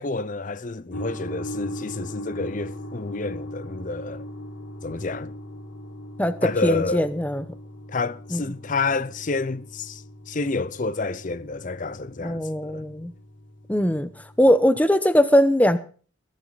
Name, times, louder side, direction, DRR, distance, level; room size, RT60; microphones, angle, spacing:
voice 1, 0.0-4.2 4.8-5.3 6.4-7.1 7.9-12.8, left 3 dB, 40° left, 0.7 m, -29 dB
sound 1, 0.9-14.6, equal, 65° left, 1.9 m, -39 dB
voice 2, 6.2-7.4 8.3-8.4 12.2-13.1 13.7-14.1 14.4-15.8, equal, 10° left, 0.8 m, -20 dB
21.5 x 9.0 x 4.1 m
head